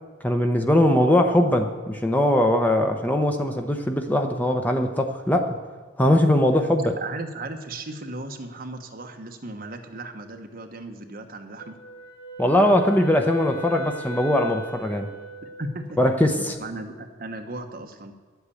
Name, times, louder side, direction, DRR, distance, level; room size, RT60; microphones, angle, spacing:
voice 1, 0.2-5.6 6.0-7.0 12.4-15.1 16.0-16.6, left 1 dB, 10° left, 5 dB, 0.8 m, -21 dB
voice 2, 7.0-11.8 15.6-16.0 16.4-18.1, right 2 dB, 45° right, 5 dB, 1.1 m, -36 dB
Wind instrument woodwind instrument, 11.6-15.6, equal, 85° left, 4.1 m, -40 dB
11.0 x 8.1 x 8.4 m, 1.4 s
head